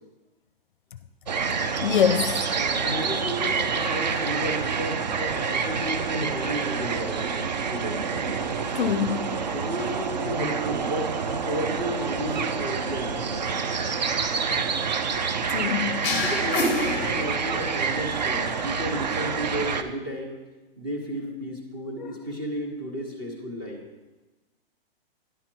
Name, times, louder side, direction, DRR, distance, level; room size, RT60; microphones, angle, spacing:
sound 1, 1.3-19.8, right 5 dB, 45° right, 0.4 m, -28 dB
voice 1, 1.8-2.4 8.7-9.3 15.5-16.1 22.0-22.1, left 8 dB, 55° left, 11 dB, 0.5 m, -24 dB
voice 2, 2.6-8.0 9.5-13.4 16.2-20.4 20.8-23.8, equal, 25° right, 2 dB, 1.0 m, -33 dB
sound 2, 16.0-17.8, left 2 dB, 10° left, 0.8 m, -27 dB
10.0 x 5.6 x 4.5 m, 1.1 s
hypercardioid pair, 180°, 31 cm